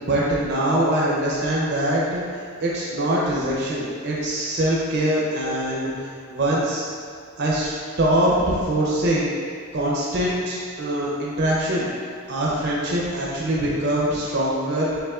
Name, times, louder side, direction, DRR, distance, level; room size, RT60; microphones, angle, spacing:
voice 1, 0.0-2.2 2.6-5.9 6.3-6.8 7.4-9.3 9.7-11.9 12.3-14.9, right 1 dB, 55° right, -5 dB, 0.7 m, -23 dB
5.4 x 3.9 x 2.4 m, 2.1 s
head